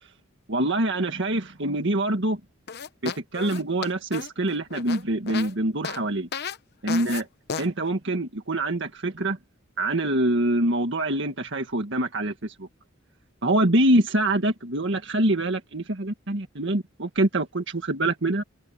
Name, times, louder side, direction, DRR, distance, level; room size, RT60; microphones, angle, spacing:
voice 1, 0.5-2.4 3.0-6.3 6.8-7.3 7.6-9.4 9.8-12.7 13.4-18.4, right 1 dB, 60° right, 1.9 m, -25 dB
sound 1, 2.7-5.5 5.8-6.0 6.3-6.6 6.9-7.2 7.5-7.7, left 6 dB, 55° left, 0.9 m, -33 dB
open air
head